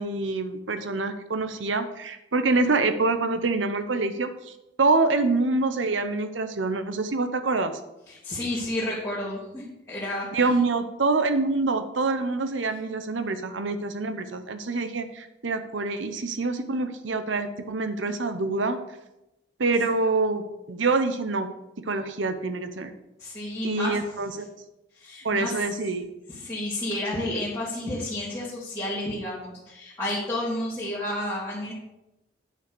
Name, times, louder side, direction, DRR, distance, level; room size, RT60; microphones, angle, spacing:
voice 1, 0.0-7.7 10.3-18.8 19.6-21.5 21.8-22.9 23.6-24.5 25.2-26.1, right 3 dB, 85° right, 9 dB, 0.9 m, -26 dB
voice 2, 8.1-10.3 23.2-24.0 24.9-25.5 26.3-31.7, left 1 dB, 15° left, -9 dB, 2.1 m, -31 dB
8.9 x 5.9 x 6.2 m, 0.92 s
head